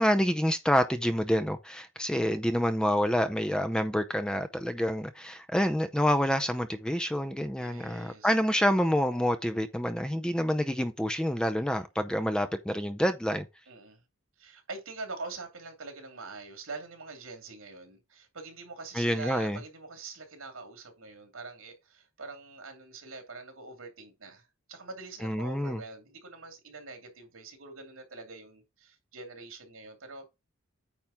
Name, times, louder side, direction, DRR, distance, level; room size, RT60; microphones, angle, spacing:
voice 1, 0.0-13.5 18.9-19.6 25.2-25.8, equal, 5° left, 0.5 m, -27 dB
voice 2, 7.6-8.7 11.7-11.8 13.7-14.0 14.4-30.3, right 3 dB, 85° right, 2.7 m, -44 dB
9.0 x 3.5 x 5.6 m
head